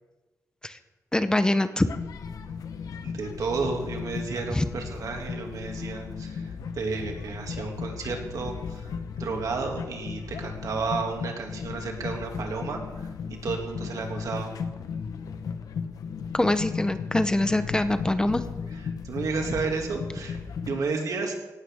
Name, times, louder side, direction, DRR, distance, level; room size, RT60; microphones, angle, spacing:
voice 1, 1.1-1.9 4.5-4.7 16.3-18.4, left 1 dB, 15° left, 10 dB, 0.7 m, -24 dB
sound 1, 1.9-20.8, left 6 dB, 85° left, 1.0 m, -36 dB
voice 2, 3.0-8.9 9.2-13.1 13.4-14.6 18.7-20.4 20.7-21.4, right 4 dB, 75° right, 2 dB, 2.5 m, -32 dB
17.5 x 13.0 x 3.6 m, 1.1 s
wide cardioid pair, 105°, 6 cm